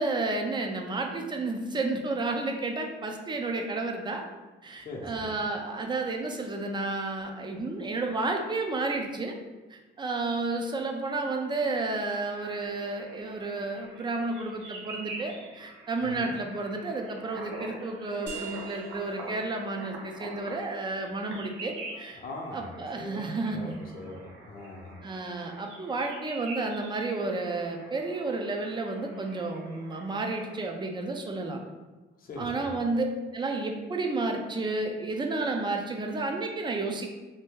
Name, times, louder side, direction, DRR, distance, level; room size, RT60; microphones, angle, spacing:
voice 1, 0.0-4.2 4.6-9.3 9.7-22.2 22.5-23.8 25.0-31.6 32.4-33.1 33.3-37.1, right 3 dB, 25° right, 3 dB, 0.5 m, -31 dB
voice 2, 4.8-5.3 16.0-16.3 22.2-23.2 23.5-24.9 32.2-32.8, left 2 dB, 45° left, -1 dB, 0.7 m, -41 dB
sound 1, 11.5-30.7, right 2 dB, 85° right, 0.7 m, -46 dB
sound 2, 18.3-23.6, right 4 dB, 55° right, 0.9 m, -46 dB
2.7 x 2.6 x 3.6 m, 1.2 s
cardioid pair, 90°, 20 cm